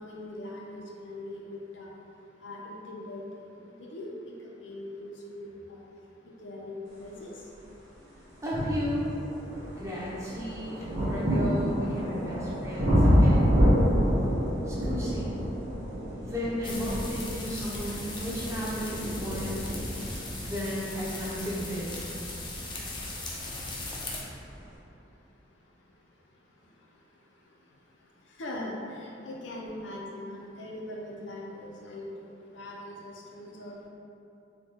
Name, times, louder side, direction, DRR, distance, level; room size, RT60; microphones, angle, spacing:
voice 1, 0.0-1.9 2.4-3.2 3.6-4.1 4.6-5.8 6.4-7.3 28.4-28.7 29.0-32.1 32.5-33.7, left 1 dB, 75° left, -2 dB, 0.5 m, -41 dB
sound 1, 8.0-8.1 8.7-23.4 24.3-24.4, equal, 70° right, 0.9 m, -28 dB
voice 2, 8.4-9.1 9.8-13.6 14.7-15.4 16.2-19.7 20.4-22.1, equal, 15° right, -7 dB, 0.6 m, -34 dB
sound 2, 16.6-24.2, left 2 dB, 25° left, 0.4 m, -38 dB
4.4 x 2.3 x 2.8 m, 2.8 s
head